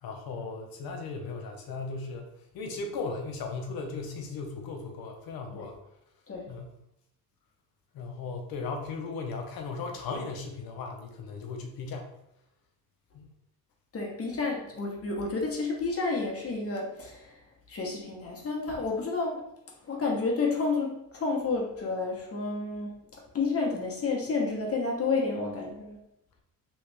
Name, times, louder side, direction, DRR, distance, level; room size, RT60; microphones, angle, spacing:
voice 1, 0.0-2.3 2.5-5.7 6.5-6.7 7.9-12.1 13.2-13.3, left 4 dB, 85° left, 3 dB, 0.8 m, -37 dB
voice 2, 13.9-17.3 17.7-19.4 19.9-23.0 23.3-26.0, left 3 dB, 40° left, -1 dB, 1.0 m, -30 dB
3.1 x 3.1 x 3.4 m, 0.79 s
cardioid pair, 100°, 35 cm